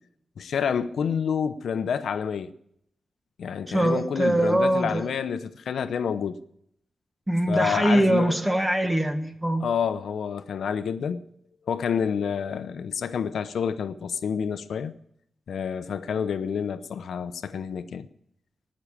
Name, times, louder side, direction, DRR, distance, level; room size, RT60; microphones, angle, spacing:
voice 1, 0.4-2.5 3.4-6.4 7.5-8.4 9.6-11.2 11.7-14.9 15.5-18.1, left 7 dB, 85° left, 0.8 m, -28 dB
voice 2, 3.7-5.0 7.3-9.6, right 1 dB, 10° right, 1.4 m, -23 dB
19.5 x 6.4 x 8.6 m
wide cardioid pair, 175°, 0 cm